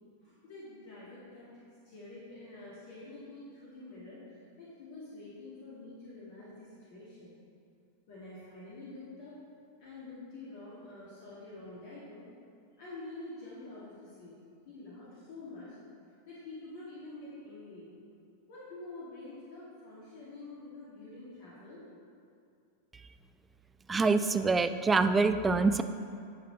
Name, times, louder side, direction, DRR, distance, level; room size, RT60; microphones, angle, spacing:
voice 1, 0.2-7.4 8.1-9.4 9.8-12.2 12.7-14.3 14.6-15.8 16.3-17.9 18.5-21.8, left 2 dB, 50° left, -8 dB, 2.2 m, -47 dB
voice 2, 23.9-25.8, right 4 dB, 15° right, 10 dB, 0.4 m, -25 dB
10.5 x 6.1 x 4.3 m, 2.4 s
figure-of-eight pair, 90°, 0 cm